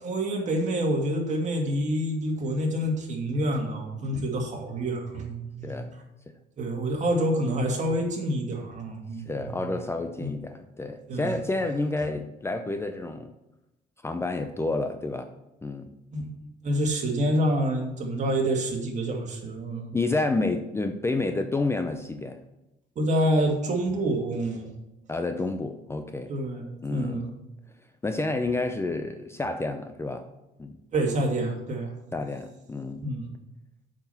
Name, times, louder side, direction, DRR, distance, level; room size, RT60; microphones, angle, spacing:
voice 1, 0.0-5.8 6.6-9.7 10.2-10.3 11.1-11.4 16.1-16.3 16.6-20.0 23.0-24.7 26.3-27.3 30.9-31.9 33.0-33.3, right 1 dB, 45° right, 1 dB, 2.3 m, -27 dB
voice 2, 5.6-6.0 6.3-6.4 9.3-13.3 14.0-15.3 15.6-15.9 19.9-22.4 25.1-26.3 26.8-27.3 28.0-30.3 30.6-30.8 32.1-33.1, left 2 dB, 15° left, 7 dB, 0.6 m, -29 dB
6.7 x 6.0 x 7.1 m, 0.92 s
cardioid pair, 110°, 17 cm